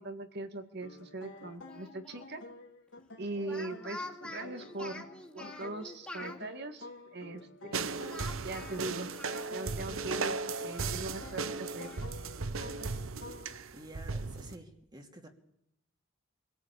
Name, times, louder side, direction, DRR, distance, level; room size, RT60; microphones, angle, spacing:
voice 1, 0.0-2.4 3.2-5.1 5.3-7.9 8.4-9.1 9.5-11.9, right 2 dB, 55° right, 7 dB, 2.3 m, -41 dB
sound 1, 0.8-13.6, left 2 dB, 65° left, 2.9 m, -51 dB
Speech, 1.7-2.3 3.4-6.4 8.1-9.8 10.2-10.3 10.7-12.1, left 2 dB, 5° left, 2.7 m, -47 dB
sound 2, 7.7-14.6, right 4 dB, 85° right, 1.0 m, -36 dB
voice 2, 13.7-15.3, right 1 dB, 20° right, 4 dB, 2.6 m, -50 dB
25.0 x 17.0 x 8.5 m, 0.78 s
head